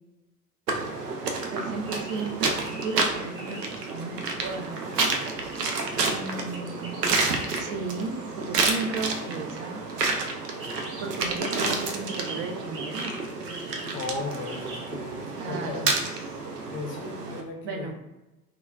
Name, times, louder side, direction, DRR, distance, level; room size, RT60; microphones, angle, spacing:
sound 1, 0.7-17.4, right 3 dB, 85° right, 0.6 m, -30 dB
voice 1, 1.5-3.6 3.9-4.9 5.4-5.6 6.1-9.8 11.0-13.2 15.4-15.9 17.6-18.0, right 3 dB, 25° right, 3 dB, 0.3 m, -35 dB
sound 2, 1.8-2.3 2.6-3.0 3.3-3.7 5.1-6.1 6.3-7.6 7.9-9.3 9.9-10.0 10.5-13.1 13.4-13.9 14.4-14.8 15.4-16.4, right 2 dB, 60° right, 1.5 m, -43 dB
voice 2, 13.9-15.9 16.7-17.9, left 3 dB, 25° left, 1 dB, 0.7 m, -36 dB
3.6 x 2.3 x 2.2 m, 1.0 s
figure-of-eight pair, 75°, 47 cm